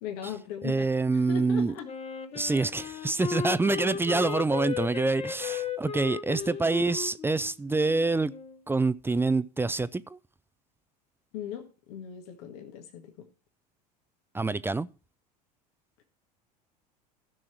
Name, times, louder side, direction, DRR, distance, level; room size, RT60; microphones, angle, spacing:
voice 1, 0.0-1.9 6.3-6.5 11.3-13.3, left 8 dB, 65° left, 1.8 m, -39 dB
voice 2, 0.6-1.7 2.3-8.3 8.7-10.2 14.3-14.9, right 3 dB, 10° right, 0.5 m, -26 dB
Wind instrument woodwind instrument, 1.8-8.6, left 6 dB, 30° left, 1.2 m, -36 dB
15.0 x 6.3 x 4.6 m
hypercardioid pair, 80°, 21 cm